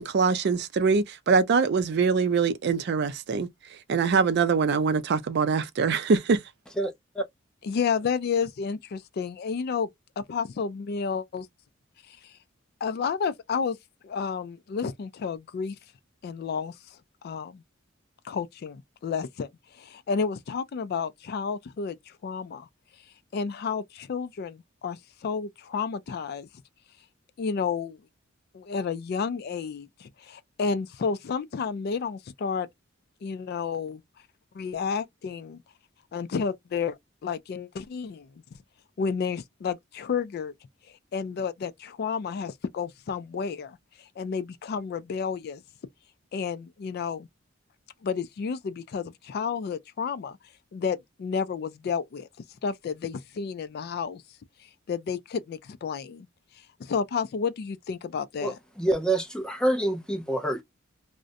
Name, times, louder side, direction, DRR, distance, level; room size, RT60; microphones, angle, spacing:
voice 1, 0.0-3.5 3.9-6.4, right 5 dB, 55° right, 0.4 m, -23 dB
voice 2, 6.8-7.2 58.4-60.6, right 1 dB, 5° left, 0.5 m, -27 dB
voice 3, 7.6-9.9 10.2-11.5 12.8-13.8 14.0-15.8 16.2-16.7 17.2-17.6 18.2-19.5 19.8-22.0 22.2-22.7 23.3-26.5 27.4-28.0 28.5-32.7 33.2-34.0 34.5-35.6 36.1-37.0 37.2-38.3 39.0-40.5 41.1-43.8 44.2-45.6 46.3-47.3 48.0-50.4 50.7-52.3 52.6-54.2 54.9-56.3 56.8-58.6, left 6 dB, 50° left, 0.3 m, -31 dB
2.5 x 2.1 x 2.5 m
head